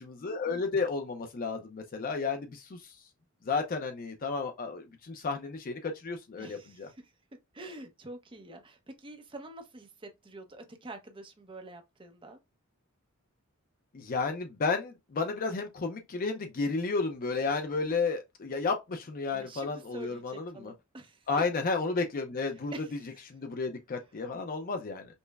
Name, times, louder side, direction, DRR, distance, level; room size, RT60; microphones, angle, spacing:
voice 1, 0.0-2.8 3.5-6.9 13.9-20.7 21.3-22.7 23.3-25.1, left 4 dB, 45° left, 0.5 m, -32 dB
voice 2, 6.4-7.1 7.5-12.4 19.3-21.3 22.4-23.2 23.9-24.0, right 1 dB, 25° right, 0.7 m, -47 dB
5.3 x 2.1 x 2.3 m
head